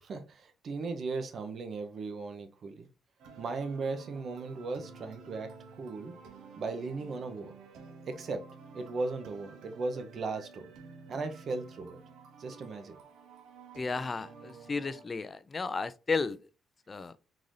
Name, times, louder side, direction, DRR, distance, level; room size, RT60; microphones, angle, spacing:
voice 1, 0.0-2.9 3.4-6.1 6.6-7.6 8.1-8.5 8.7-10.7 11.1-12.0 12.4-13.0, right 3 dB, 55° right, 0.7 m, -37 dB
sound 1, 3.2-15.1, right 5 dB, 90° right, 0.7 m, -52 dB
voice 2, 13.8-16.4 16.9-17.1, left 4 dB, 30° left, 0.3 m, -33 dB
3.8 x 2.6 x 3.1 m
cardioid pair, 90°, 0 cm